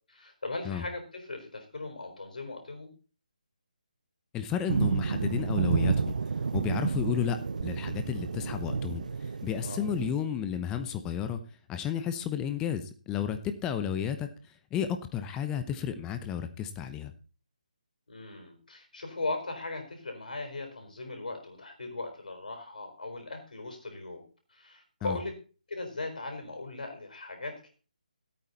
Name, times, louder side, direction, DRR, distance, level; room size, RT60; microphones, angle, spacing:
voice 1, 0.1-2.9 9.6-9.8 18.1-24.2 24.5-25.3 25.7-27.7, left 2 dB, 70° left, 4 dB, 4.4 m, -38 dB
voice 2, 4.3-6.1 6.5-11.4 11.7-14.3 14.7-17.1 25.0-25.2, left 9 dB, 15° left, 8 dB, 0.9 m, -32 dB
sound 1, 4.7-10.1, right 5 dB, 65° right, 0.6 m, -30 dB
15.0 x 8.8 x 4.1 m, 0.37 s
figure-of-eight pair, 150°, 4 cm